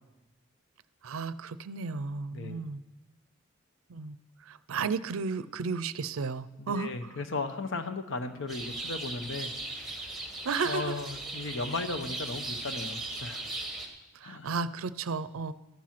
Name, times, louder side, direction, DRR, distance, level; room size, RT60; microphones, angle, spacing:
voice 1, 1.0-2.8 3.9-7.2 10.4-11.0 14.1-15.5, right 5 dB, 80° right, 15 dB, 0.5 m, -34 dB
voice 2, 6.6-10.1 10.6-13.4 14.2-14.5, left 3 dB, 60° left, 8 dB, 0.9 m, -36 dB
sound 1, 8.5-13.9, right 2 dB, ahead, 1.5 m, -38 dB
13.0 x 7.4 x 5.9 m, 1.0 s
head